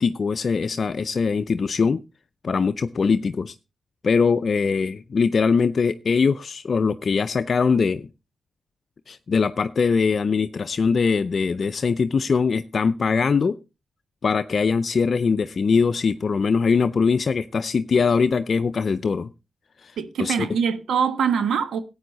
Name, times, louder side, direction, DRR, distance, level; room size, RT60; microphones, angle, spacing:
voice 1, 0.0-2.0 2.4-3.5 4.0-8.1 9.1-13.5 14.2-19.3 19.8-20.4, left 5 dB, 55° left, 0.5 m, -22 dB
voice 2, 20.0-21.8, right 7 dB, 80° right, 1.2 m, -23 dB
12.5 x 8.7 x 4.0 m
cardioid pair, 50°, 0 cm